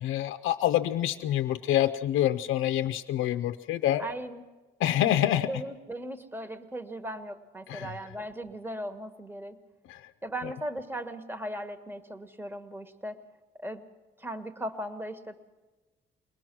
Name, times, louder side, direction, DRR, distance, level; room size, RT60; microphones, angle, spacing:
voice 1, 0.0-4.0 4.8-5.5 7.7-7.9 9.9-10.0, left 12 dB, 85° left, 8 dB, 0.5 m, -26 dB
voice 2, 4.0-4.4 5.0-5.2 5.5-9.6 10.2-13.2 13.6-13.8 14.2-15.4, right 1 dB, 10° right, 9 dB, 1.3 m, -38 dB
23.0 x 19.0 x 6.1 m, 1.2 s
cardioid pair, 90°, 20 cm